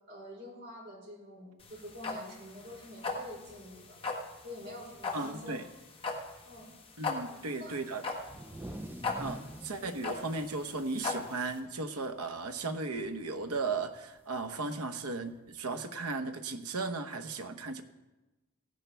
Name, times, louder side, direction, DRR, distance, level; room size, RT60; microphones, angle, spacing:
voice 1, 0.1-4.0 4.4-5.6 6.4-6.7 7.3-7.7 8.1-8.2 9.2-9.3, equal, 45° right, -3 dB, 4.8 m, -47 dB
sound 1, 1.6-11.6, left 4 dB, 25° left, 1.3 m, -38 dB
voice 2, 5.1-5.6 7.0-8.0 9.2-17.8, right 3 dB, 85° right, 8 dB, 1.0 m, -36 dB
sound 2, 8.2-11.9 12.2-12.4 12.8-13.2 14.3-14.4 15.5-15.6, right 1 dB, 10° right, 0.4 m, -46 dB
16.0 x 10.5 x 3.4 m, 1.1 s
head